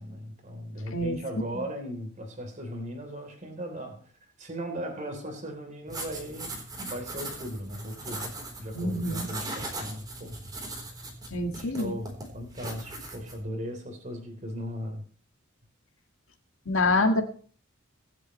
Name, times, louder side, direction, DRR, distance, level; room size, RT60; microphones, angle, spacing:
voice 1, 0.0-4.1 4.4-10.4 11.5-15.0, equal, 35° right, 5 dB, 3.6 m, -38 dB
sound 1, 5.9-13.4, right 2 dB, 20° right, 3.8 m, -39 dB
voice 2, 8.7-9.3 11.3-11.9 16.7-17.2, left 2 dB, 70° left, 4 dB, 1.7 m, -26 dB
24.5 x 8.3 x 3.2 m, 0.43 s
head